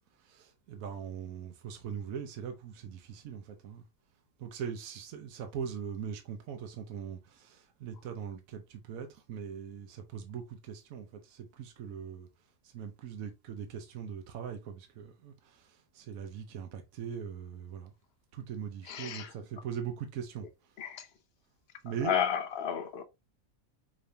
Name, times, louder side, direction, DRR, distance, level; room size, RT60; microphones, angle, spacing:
voice 1, 0.3-3.8 4.4-12.3 12.7-15.6 15.9-17.9 18.3-20.5 21.8-22.2, right 7 dB, 80° right, 1.1 m, -41 dB
voice 2, 18.9-19.3 20.8-21.1 22.0-23.0, left 8 dB, 55° left, 0.8 m, -32 dB
5.0 x 3.1 x 2.6 m
omnidirectional pair, 1.4 m